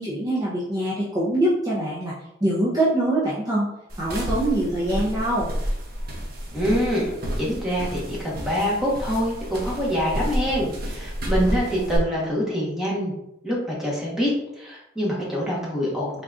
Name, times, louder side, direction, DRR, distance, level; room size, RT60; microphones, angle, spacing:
voice 1, 0.0-2.1 2.4-3.7 4.0-5.5, right 1 dB, 20° right, -8 dB, 0.7 m, -23 dB
sound 1, 3.9-12.0, equal, 55° right, 0.8 m, -30 dB
voice 2, 6.5-7.1 7.4-13.1 13.4-16.2, equal, 5° right, -6 dB, 1.2 m, -25 dB
4.0 x 3.5 x 2.5 m, 0.85 s
head